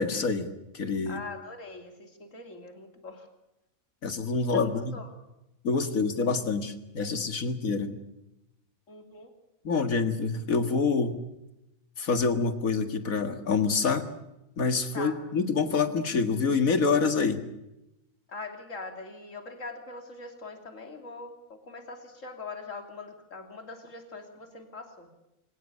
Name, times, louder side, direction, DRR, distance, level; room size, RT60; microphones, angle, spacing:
voice 1, 0.0-1.2 4.0-4.9 5.6-7.9 9.6-11.2 12.0-14.1 14.6-17.4, left 4 dB, 90° left, 9 dB, 2.4 m, -26 dB
voice 2, 1.1-3.3 4.5-5.1 8.9-9.3 14.9-15.2 18.3-25.1, left 3 dB, 65° left, 5 dB, 3.4 m, -42 dB
23.0 x 19.0 x 8.4 m, 0.92 s
omnidirectional pair, 1.4 m